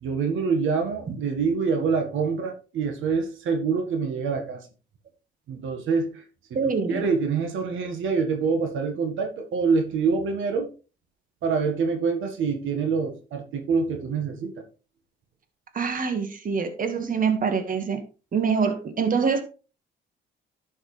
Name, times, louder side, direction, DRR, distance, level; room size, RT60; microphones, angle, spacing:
voice 1, 0.0-4.7 5.5-6.2 6.5-6.6 6.9-10.7 11.4-14.5, right 5 dB, 80° right, 4 dB, 1.6 m, -26 dB
voice 2, 6.5-7.1 15.7-18.0 18.3-19.4, right 5 dB, 45° right, 7 dB, 1.7 m, -25 dB
11.5 x 6.4 x 3.3 m, 0.34 s
cardioid pair, 90°, 20 cm